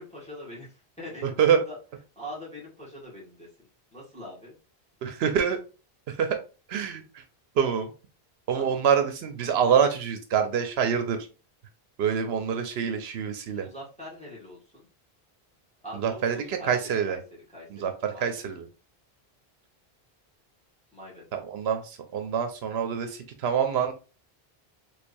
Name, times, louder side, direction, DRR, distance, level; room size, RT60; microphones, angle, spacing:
voice 1, 0.0-1.4 1.7-1.8 2.2-3.5 3.9-4.5 8.5-8.8 13.5-14.9 15.8-17.2 17.5-18.4 20.9-21.2, equal, 5° left, -6 dB, 1.7 m, -43 dB
voice 2, 5.0-5.6 6.1-6.4 6.7-7.0 7.6-7.9 8.5-11.2 12.0-13.7 15.9-17.2 17.7-17.9 18.2-18.6 21.3-23.9, right 7 dB, 80° right, 6 dB, 0.8 m, -25 dB
3.4 x 3.3 x 2.5 m, 0.33 s
omnidirectional pair, 1.1 m